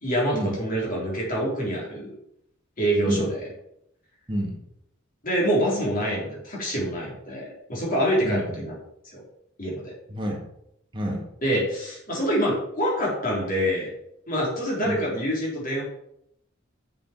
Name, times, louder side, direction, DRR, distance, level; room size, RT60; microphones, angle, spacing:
voice 1, 0.0-2.1 2.8-3.5 5.2-8.7 9.1-9.2 9.6-9.9 11.4-13.9 14.3-15.8, equal, 45° left, -4 dB, 3.8 m, -26 dB
voice 2, 4.3-4.6 8.2-8.5 10.1-10.5 10.9-11.3 14.8-15.0, equal, 25° right, 0 dB, 1.5 m, -29 dB
6.8 x 6.7 x 5.1 m, 0.77 s
head